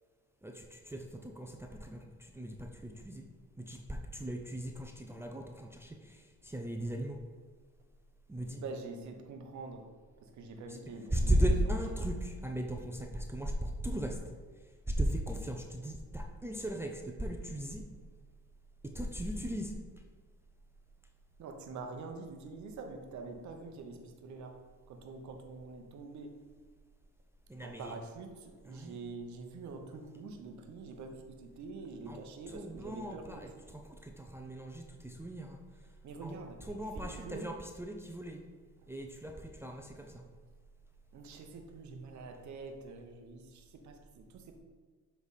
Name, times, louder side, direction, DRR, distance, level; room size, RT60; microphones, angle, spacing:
voice 1, 0.4-3.3 3.6-7.3 8.3-8.6 11.1-14.2 14.9-17.8 18.8-19.7 27.5-27.9 28.7-29.0 32.1-32.2 32.5-35.6 36.2-36.4 36.7-38.5 38.9-40.2, right 1 dB, 10° right, 2 dB, 0.5 m, -36 dB
voice 2, 8.5-9.9 10.2-11.8 21.4-24.6 24.9-26.4 27.6-33.4 36.0-36.7 36.9-37.6 41.1-44.6, right 3 dB, 70° right, 4 dB, 0.9 m, -46 dB
7.3 x 3.4 x 4.1 m, 1.6 s
cardioid pair, 90°, 30 cm